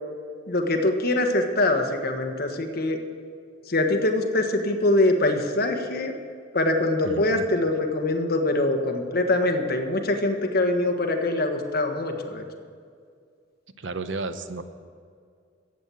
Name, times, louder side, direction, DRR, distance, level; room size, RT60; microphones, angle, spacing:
voice 1, 0.5-3.0 3.7-6.1 6.5-12.4, left 2 dB, 55° left, 4 dB, 1.4 m, -23 dB
voice 2, 7.0-7.5 13.8-14.6, right 3 dB, 70° right, 10 dB, 0.8 m, -32 dB
14.0 x 8.4 x 7.7 m, 2.2 s
head